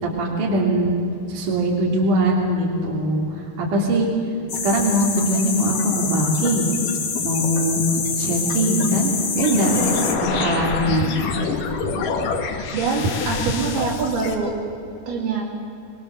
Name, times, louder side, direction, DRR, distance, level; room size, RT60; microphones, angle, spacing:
voice 1, 0.0-3.2 3.6-4.1 4.6-6.7 7.2-7.8 8.2-9.1 9.4-9.7 10.3-11.1, right 1 dB, 55° right, -1 dB, 4.3 m, -21 dB
sound 1, 4.5-10.1, left 5 dB, 45° left, 2.0 m, -26 dB
sound 2, 9.4-14.4, left 5 dB, 65° left, 3.0 m, -26 dB
voice 2, 9.8-10.4 11.7-12.2 12.4-14.6 15.1-15.4, right 4 dB, 80° right, -2 dB, 4.9 m, -26 dB
23.0 x 22.5 x 6.8 m, 2.6 s
omnidirectional pair, 4.4 m